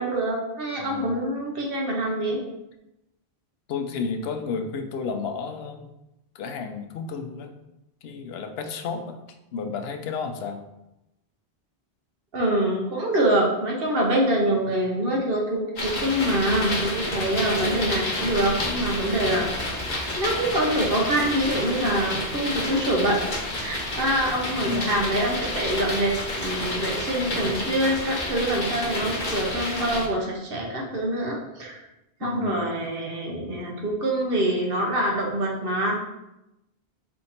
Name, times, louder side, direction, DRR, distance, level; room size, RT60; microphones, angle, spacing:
voice 1, 0.0-2.4 12.3-19.5 20.2-23.2 23.5-31.8 32.2-36.0, right 1 dB, 60° right, -1 dB, 1.1 m, -25 dB
voice 2, 0.8-1.1 3.7-5.9 6.3-7.5 8.0-9.2 9.5-10.6 24.7-25.1 32.2-32.6, left 5 dB, 75° left, 6 dB, 0.8 m, -31 dB
sound 1, 15.8-30.1, left 1 dB, 45° left, 1.0 m, -30 dB
4.3 x 2.7 x 4.2 m, 0.90 s
omnidirectional pair, 1.1 m